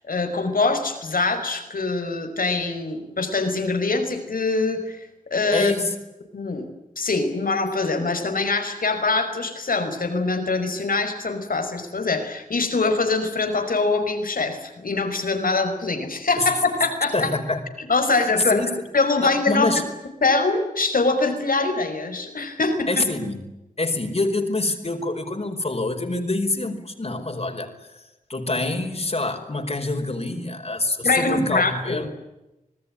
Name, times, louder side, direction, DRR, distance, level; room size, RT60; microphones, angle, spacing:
voice 1, 0.1-5.7 6.3-6.6 7.0-17.3 17.9-18.6 18.9-19.8 20.2-23.0 31.0-32.1, left 3 dB, 85° left, 7 dB, 5.3 m, -23 dB
voice 2, 5.5-5.9 16.4-16.5 17.1-17.6 18.5-18.7 19.2-19.8 22.9-23.4 23.8-28.0 28.3-32.0, left 2 dB, 45° left, 4 dB, 4.9 m, -26 dB
26.5 x 19.5 x 10.0 m, 0.95 s
wide cardioid pair, 70°, 14 cm